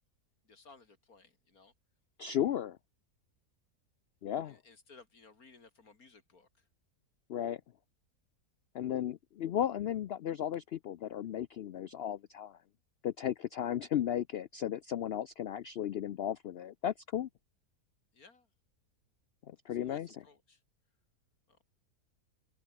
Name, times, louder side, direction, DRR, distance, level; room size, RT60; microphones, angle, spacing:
voice 1, 0.4-1.7 4.4-6.7 18.1-18.5 19.7-20.6 21.5-21.6, left 4 dB, 65° left, 3.3 m, -59 dB
voice 2, 2.2-2.8 4.2-4.6 7.3-7.6 8.7-12.6 13.0-17.3 19.5-20.2, left 10 dB, 85° left, 0.5 m, -35 dB
omnidirectional pair, 1.6 m